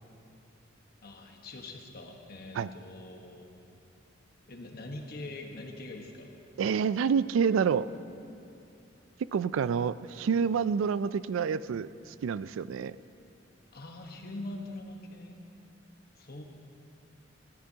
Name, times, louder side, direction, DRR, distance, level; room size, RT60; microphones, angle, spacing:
voice 1, 1.0-3.4 4.5-6.3 13.7-15.4 16.2-16.4, left 2 dB, 55° left, 2 dB, 1.3 m, -43 dB
voice 2, 6.6-7.9 9.3-13.0, right 6 dB, 85° right, 16 dB, 0.3 m, -28 dB
19.5 x 14.0 x 2.8 m, 2.7 s
head